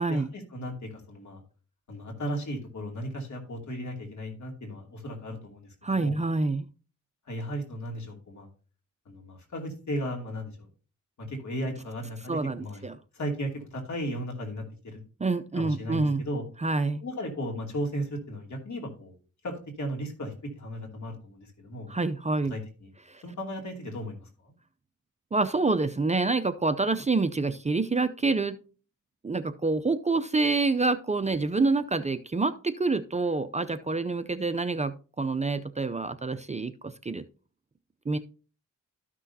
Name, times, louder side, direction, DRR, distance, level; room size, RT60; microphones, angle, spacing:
voice 1, 0.1-1.4 1.9-6.2 7.3-8.5 9.1-10.7 11.2-12.8 13.1-15.0 15.5-16.4 17.0-19.2 19.4-21.9 22.4-22.9 23.2-24.5, equal, 65° left, 1 dB, 2.6 m, -36 dB
voice 2, 5.8-6.7 12.3-12.9 15.2-16.2 16.6-17.0 21.9-22.5 23.1-23.2 25.3-28.6 29.2-37.2 38.1-38.2, right 3 dB, 20° right, 10 dB, 0.5 m, -27 dB
13.0 x 6.1 x 2.7 m, 0.37 s
wide cardioid pair, 90°, 31 cm